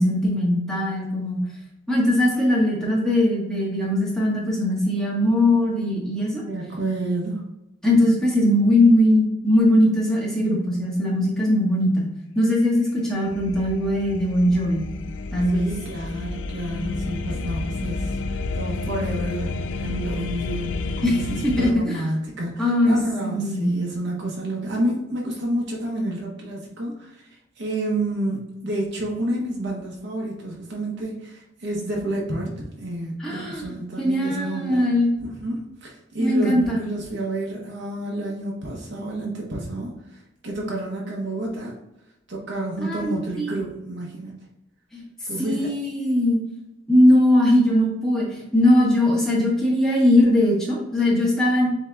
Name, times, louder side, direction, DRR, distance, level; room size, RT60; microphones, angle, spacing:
voice 1, 0.0-1.4 1.9-6.4 7.8-12.1 12.3-14.9 15.3-15.7 21.0-21.1 21.4-22.0 22.6-23.0 23.2-23.7 33.2-35.1 36.2-36.8 42.8-43.5 44.9-45.0 45.4-46.4 46.9-51.7, left 1 dB, 5° left, -5 dB, 1.3 m, -20 dB
voice 2, 6.4-7.4 15.5-34.9 35.2-41.7 42.3-44.4 45.3-45.7, right 1 dB, 65° right, -2 dB, 0.8 m, -29 dB
sound 1, 12.9-21.7, left 3 dB, 70° left, 0.3 m, -30 dB
7.3 x 2.8 x 2.3 m, 0.92 s
head